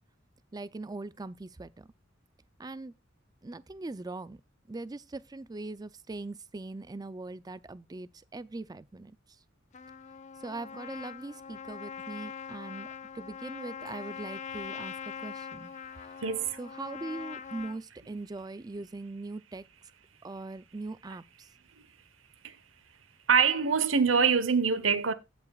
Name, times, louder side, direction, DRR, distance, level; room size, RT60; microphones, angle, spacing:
voice 1, 0.5-1.9 2.6-2.9 3.4-4.4 4.7-9.1 10.4-12.9 13.1-15.7 16.6-19.6 20.2-21.5, right 2 dB, 20° right, 0.4 m, -41 dB
Trumpet, 9.7-17.8, left 7 dB, 40° left, 0.5 m, -42 dB
voice 2, 16.2-16.6 22.4-22.6 23.3-25.1, right 6 dB, 85° right, 1.1 m, -24 dB
17.0 x 5.8 x 2.4 m
head